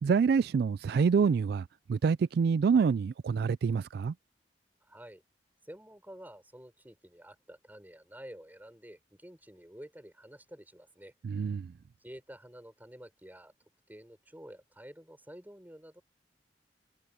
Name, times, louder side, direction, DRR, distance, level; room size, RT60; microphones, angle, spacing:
voice 1, 0.0-4.1 11.2-11.7, right 6 dB, 60° right, 0.3 m, -27 dB
voice 2, 4.8-5.2 5.6-11.1 12.0-13.5 13.9-16.0, equal, 10° right, 5.1 m, -50 dB
head